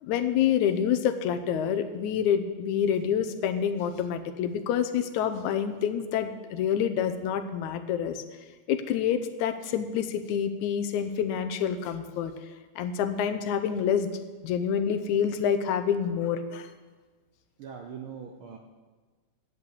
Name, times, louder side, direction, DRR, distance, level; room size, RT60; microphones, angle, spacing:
voice 1, 0.0-8.2 8.7-12.3 12.8-14.1 14.4-16.7, left 8 dB, 85° left, 9 dB, 2.1 m, -27 dB
voice 2, 17.6-18.6, right 7 dB, 70° right, 3 dB, 1.2 m, -41 dB
10.5 x 8.4 x 8.0 m, 1.3 s
omnidirectional pair, 3.4 m